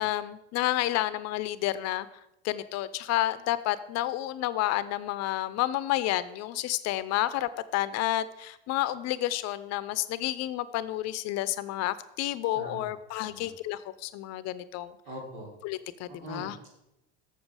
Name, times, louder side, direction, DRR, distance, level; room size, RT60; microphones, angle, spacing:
voice 1, 0.0-2.1 2.4-14.9 15.6-16.6, left 14 dB, 55° left, 16 dB, 0.6 m, -30 dB
voice 2, 12.5-12.9 13.2-13.5 15.0-15.5 16.1-16.7, right 1 dB, 75° right, -1 dB, 3.1 m, -42 dB
7.2 x 7.0 x 4.8 m, 0.86 s
hypercardioid pair, 75°, 32 cm